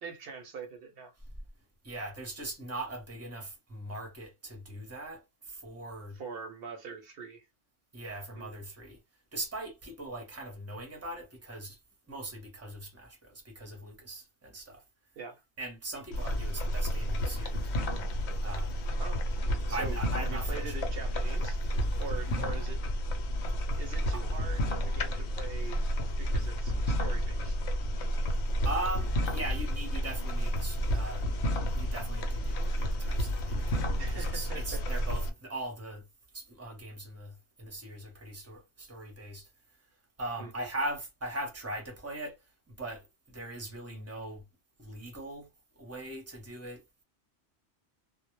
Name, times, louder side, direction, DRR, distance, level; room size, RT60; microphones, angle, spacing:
voice 1, 0.0-1.1 6.1-7.5 8.3-8.5 15.2-15.4 19.0-19.2 19.7-21.6 22.0-22.8 23.8-25.8 26.2-27.6 34.0-35.0 40.4-40.7, right 5 dB, 65° right, 0.7 m, -43 dB
voice 2, 1.8-6.2 7.9-9.0 9.3-11.8 12.1-14.8 15.6-17.7 18.4-18.8 19.7-20.8 22.3-22.6 24.1-24.2 28.6-31.3 31.7-36.1 36.3-39.5 40.2-42.4 42.7-44.4 44.8-45.5 45.8-46.8, right 1 dB, 15° right, 0.6 m, -40 dB
sound 1, 16.1-35.3, equal, 80° left, 0.9 m, -31 dB
2.1 x 2.0 x 2.9 m
omnidirectional pair, 1.1 m